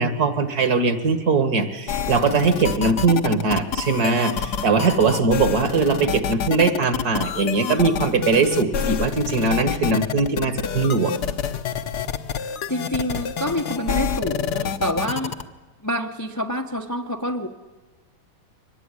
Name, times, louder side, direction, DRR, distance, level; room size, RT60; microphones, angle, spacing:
voice 1, 0.0-11.3, right 4 dB, 50° right, 11 dB, 2.0 m, -21 dB
sound 1, 1.9-15.4, left 7 dB, 55° left, 1.3 m, -27 dB
voice 2, 12.7-15.3 15.8-17.5, equal, 15° left, 4 dB, 0.7 m, -27 dB
23.5 x 19.5 x 9.8 m, 1.3 s
omnidirectional pair, 2.3 m